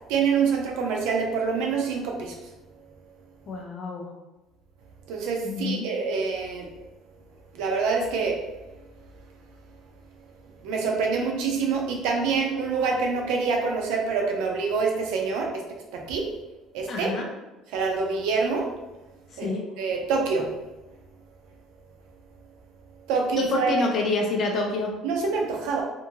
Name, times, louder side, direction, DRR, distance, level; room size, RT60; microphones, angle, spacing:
voice 1, 0.1-2.3 5.1-6.7 7.5-8.4 10.6-15.6 15.9-16.3 16.7-17.1 17.7-18.7 19.4-19.5 19.8-20.5 23.1-23.8 25.0-25.8, right 5 dB, 90° right, 1 dB, 0.5 m, -26 dB
voice 2, 3.5-4.0 5.4-5.8 16.9-17.3 19.4-19.6 23.4-24.9, left 3 dB, 35° left, 1 dB, 0.5 m, -27 dB
2.6 x 2.6 x 2.7 m, 1.1 s
cardioid pair, 175°, 0 cm